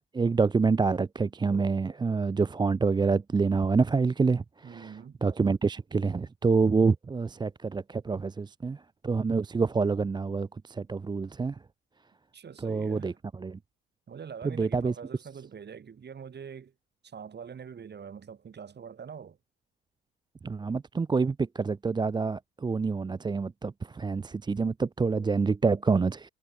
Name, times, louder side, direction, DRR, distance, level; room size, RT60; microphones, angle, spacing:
voice 1, 0.1-4.9 5.2-8.8 9.0-11.5 12.6-13.1 13.4-13.6 14.4-14.9 20.4-26.3, right 4 dB, 15° right, 0.6 m, -27 dB
voice 2, 4.6-5.2 12.3-13.2 14.1-16.7 17.0-19.4, right 7 dB, 30° right, 3.2 m, -44 dB
figure-of-eight pair, 60°, 32 cm